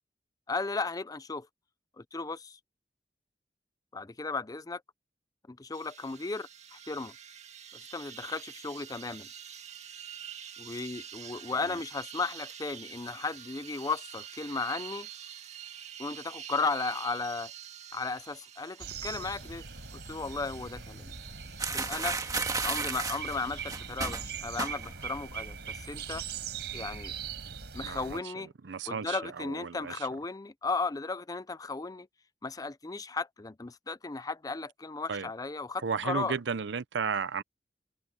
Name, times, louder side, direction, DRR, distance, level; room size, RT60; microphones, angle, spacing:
voice 1, 0.5-1.5 2.0-2.6 3.9-4.8 5.5-7.1 7.7-9.3 10.6-15.1 16.0-17.5 17.9-19.6 19.9-21.1 21.7-22.2 22.6-26.2 26.7-27.1 27.7-28.5 28.9-32.1 32.4-36.4, left 3 dB, 20° left, 0.5 m, -35 dB
sound 1, 5.7-24.0, right 9 dB, 40° right, 1.8 m, -47 dB
sound 2, 18.8-28.2, right 6 dB, 70° right, 5.7 m, -41 dB
sound 3, 21.6-25.2 25.4-25.7 26.0-26.7, right 4 dB, 20° right, 1.7 m, -34 dB
voice 2, 27.8-28.3 28.6-30.1 35.1-35.3 35.8-37.4, right 5 dB, 85° right, 0.6 m, -34 dB
head